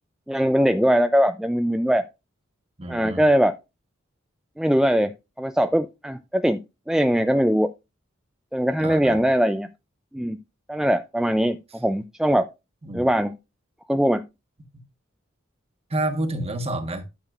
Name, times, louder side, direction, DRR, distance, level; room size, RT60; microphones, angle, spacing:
voice 1, 0.3-2.1 2.9-3.6 4.6-6.6 6.9-7.7 8.5-9.7 10.1-10.4 10.7-12.5 12.9-13.3 13.9-14.2, equal, 5° right, 0.3 m, -21 dB
voice 2, 2.8-3.3 8.8-9.2 12.8-13.1 14.7-14.8 15.9-17.0, right 1 dB, 30° right, 1.2 m, -29 dB
12.0 x 6.6 x 2.4 m
head